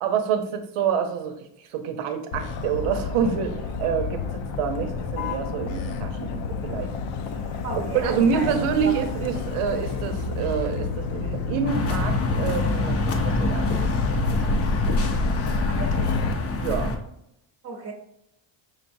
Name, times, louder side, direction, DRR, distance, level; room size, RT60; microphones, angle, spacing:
voice 1, 0.0-6.9 7.8-14.1 14.5-14.6 15.0-15.2 16.5-16.9, right 7 dB, 90° right, 7 dB, 0.8 m, -27 dB
Motor vehicle (road), 2.3-16.3, left 4 dB, 65° left, 0.6 m, -29 dB
voice 2, 7.6-9.0 15.7-16.1 17.6-17.9, right 3 dB, 30° right, 2 dB, 0.8 m, -34 dB
sound 1, 11.7-17.0, left 3 dB, 30° left, 0.6 m, -26 dB
5.4 x 3.2 x 2.6 m, 0.80 s
cardioid pair, 125°, 48 cm